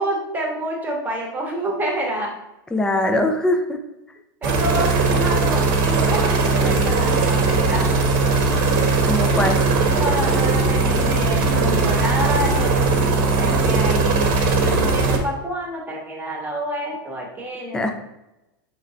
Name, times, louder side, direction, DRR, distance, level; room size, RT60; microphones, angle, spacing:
voice 1, 0.0-2.3 4.4-8.1 9.9-17.9, right 1 dB, 15° right, -1 dB, 1.0 m, -28 dB
voice 2, 2.7-3.8 9.0-9.6 17.7-17.9, left 1 dB, 5° left, 4 dB, 0.4 m, -21 dB
sound 1, 4.4-15.2, right 3 dB, 55° right, 0.9 m, -19 dB
3.8 x 3.2 x 3.9 m, 0.91 s
supercardioid pair, 145°, 13 cm